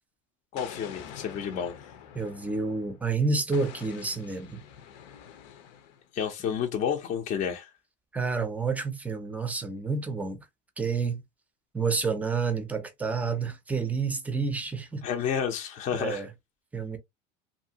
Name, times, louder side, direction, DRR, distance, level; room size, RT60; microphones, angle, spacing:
voice 1, 0.5-1.7 6.1-7.7 15.0-16.2, left 8 dB, 35° left, 0.6 m, -30 dB
Explosion, 0.6-3.0 3.5-6.1, left 8 dB, 85° left, 0.7 m, -46 dB
voice 2, 2.1-4.6 8.1-10.5 10.8-11.2 11.7-15.0 15.9-16.3 16.7-17.0, right 4 dB, 5° right, 0.5 m, -29 dB
2.7 x 2.6 x 2.7 m
cardioid pair, 145°, 20 cm